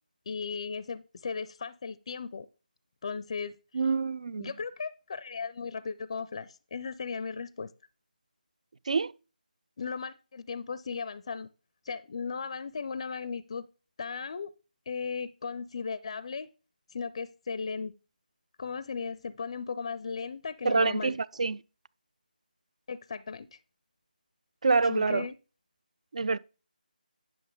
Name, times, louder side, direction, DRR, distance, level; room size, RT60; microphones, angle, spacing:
voice 1, 0.3-2.5 3.0-3.8 4.4-7.7 9.8-11.5 11.8-13.7 14.0-14.5 14.9-16.5 16.9-17.9 18.6-21.2 22.9-23.5 24.8-25.4, left 5 dB, 35° left, 0.5 m, -36 dB
voice 2, 3.7-4.5 8.9-9.1 20.6-21.1 21.4-21.6 24.6-25.3 26.1-26.4, right 4 dB, 45° right, 0.4 m, -26 dB
10.5 x 6.3 x 3.7 m
figure-of-eight pair, 160°, 5 cm